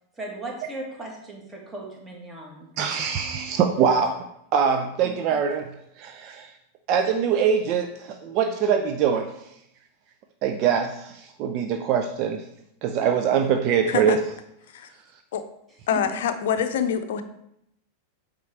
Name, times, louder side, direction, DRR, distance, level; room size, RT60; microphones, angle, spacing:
voice 1, 0.2-2.7 3.7-3.9 15.9-16.2, right 2 dB, 15° right, -1 dB, 2.0 m, -37 dB
voice 2, 2.8-4.3 4.5-6.5 6.9-9.5 10.4-12.4 12.8-14.2, right 7 dB, 40° right, 5 dB, 0.5 m, -23 dB
voice 3, 15.9-17.2, left 8 dB, 55° left, 9 dB, 0.6 m, -25 dB
8.5 x 3.7 x 4.4 m, 0.77 s
figure-of-eight pair, 90°, 0 cm